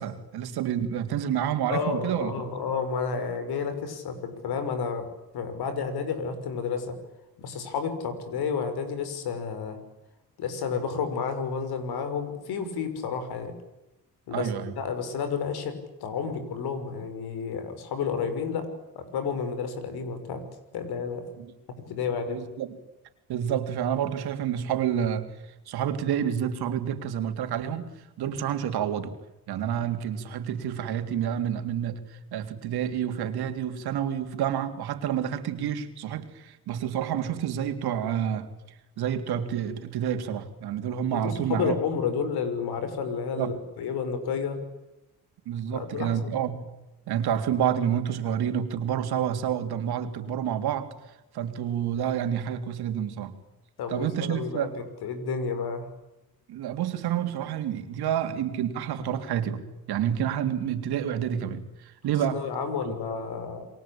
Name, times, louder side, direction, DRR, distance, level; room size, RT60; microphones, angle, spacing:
voice 1, 0.0-2.3 14.3-14.7 21.4-21.5 22.3-22.8 23.3-25.3 25.7-27.9 28.2-29.1 29.5-38.5 39.0-41.8 43.4-43.5 45.5-46.7 47.1-50.9 51.3-53.3 53.9-54.7 56.5-59.6 59.9-62.4 62.9-63.0, right 9 dB, 80° right, 7 dB, 3.5 m, -29 dB
voice 2, 1.7-5.1 5.3-7.0 7.4-9.8 10.4-13.5 14.3-15.8 16.0-18.7 19.0-20.4 20.7-21.2 21.9-22.4 28.2-28.4 29.8-29.9 41.1-44.6 45.7-46.5 53.8-55.9 62.3-63.7, left 6 dB, 80° left, 10 dB, 6.1 m, -31 dB
29.0 x 23.0 x 8.8 m, 0.95 s
cardioid pair, 100°, 37 cm